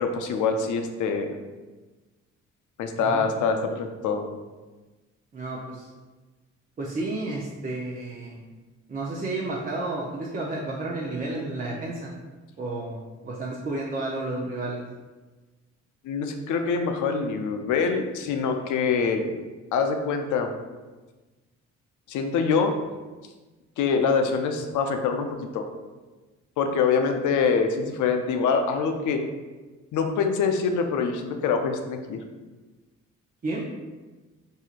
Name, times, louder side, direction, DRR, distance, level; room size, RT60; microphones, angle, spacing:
voice 1, 0.0-1.4 2.8-4.2 16.0-19.3 19.7-20.5 22.1-22.8 23.8-25.7 26.6-29.2 29.9-32.2, left 5 dB, 75° left, 5 dB, 0.5 m, -25 dB
voice 2, 5.3-5.9 6.8-8.4 8.9-12.1 12.6-14.8 33.4-33.6, right 2 dB, 30° right, -4 dB, 0.5 m, -31 dB
4.3 x 2.7 x 2.4 m, 1.2 s
cardioid pair, 90°, 30 cm